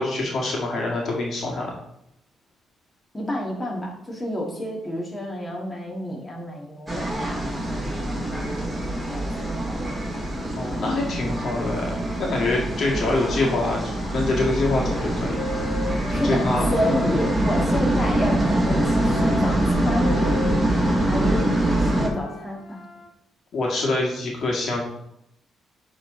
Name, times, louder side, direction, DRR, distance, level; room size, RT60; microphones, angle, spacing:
voice 1, 0.0-1.7 10.6-15.4 16.1-16.6 23.5-24.8, left 2 dB, 55° left, -2 dB, 1.9 m, -25 dB
voice 2, 3.1-9.7 16.1-20.4 21.1-21.5 21.8-22.8, equal, 15° left, -2 dB, 1.9 m, -30 dB
sound 1, 6.9-22.1, right 1 dB, 10° right, 1.9 m, -24 dB
Wind instrument woodwind instrument, 13.0-17.6 18.2-23.1, left 3 dB, 75° left, 1.1 m, -37 dB
10.0 x 3.8 x 3.8 m, 0.80 s
cardioid pair, 90°, 0 cm